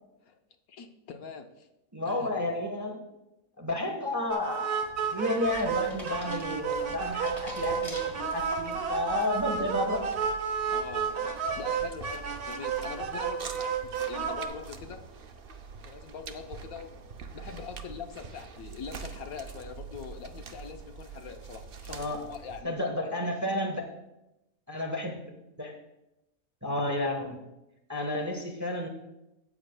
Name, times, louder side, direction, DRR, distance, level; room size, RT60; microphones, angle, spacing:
voice 1, 0.7-1.7 2.0-2.3 10.7-15.0 15.9-23.1, left 6 dB, 75° left, 5 dB, 1.2 m, -43 dB
voice 2, 1.9-3.0 3.6-4.8 5.1-10.1 21.9-22.2 22.6-23.9 24.7-25.3 25.6-25.8 26.6-27.4 27.9-28.9, left 1 dB, 15° right, 2 dB, 0.9 m, -31 dB
sound 1, 4.3-14.5, right 6 dB, 75° right, 1.5 m, -31 dB
sound 2, 4.5-8.7 9.2-9.6, equal, 20° left, 2.1 m, -47 dB
sound 3, 5.4-22.6, right 5 dB, 50° right, 0.7 m, -45 dB
13.0 x 8.6 x 2.2 m, 0.92 s
omnidirectional pair, 1.6 m